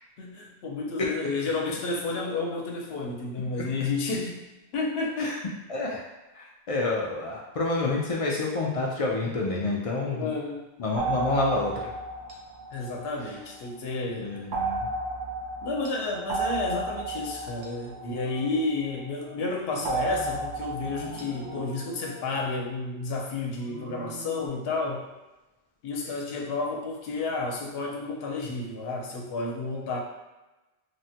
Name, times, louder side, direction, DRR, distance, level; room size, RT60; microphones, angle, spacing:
voice 1, 0.2-4.4 4.7-5.4 10.1-10.6 12.7-14.3 15.6-25.1 25.8-30.0, left 3 dB, 75° left, 0 dB, 0.8 m, -31 dB
voice 2, 5.7-6.0 6.3-10.3 10.8-11.9 13.2-13.3 14.1-14.9, left 2 dB, 55° left, -3 dB, 0.4 m, -28 dB
sound 1, 11.0-13.7 14.5-19.1 19.8-21.6, right 2 dB, 60° right, 0.7 m, -33 dB
sound 2, 18.1-18.6 19.2-20.5 20.8-22.4 23.6-24.5, right 1 dB, 35° right, 0.3 m, -44 dB
3.3 x 2.1 x 2.7 m, 1.1 s
omnidirectional pair, 1.1 m